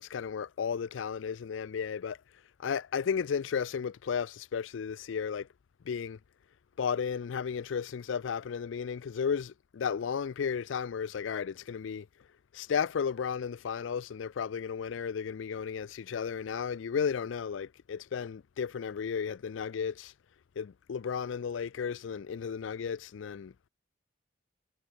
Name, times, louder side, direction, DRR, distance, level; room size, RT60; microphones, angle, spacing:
voice 1, 0.0-2.2 2.6-5.5 5.9-6.2 6.8-12.1 12.5-20.1 20.6-23.5, left 6 dB, 80° left, 0.4 m, -34 dB
head